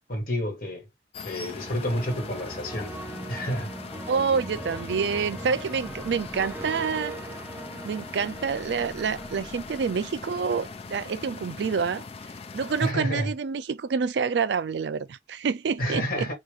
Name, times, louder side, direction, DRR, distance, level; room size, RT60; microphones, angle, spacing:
voice 1, 0.1-0.9 1.2-2.9 3.3-3.7 12.8-13.3 15.8-16.3, equal, 55° left, 1.7 m, -29 dB
sound 1, 1.1-12.9, left 4 dB, 35° left, 0.4 m, -41 dB
sound 2, 1.5-11.5, right 2 dB, 10° right, 0.6 m, -40 dB
voice 2, 4.1-7.2 7.8-12.0 12.5-16.3, right 5 dB, 70° right, 0.4 m, -27 dB
2.9 x 2.5 x 3.5 m
head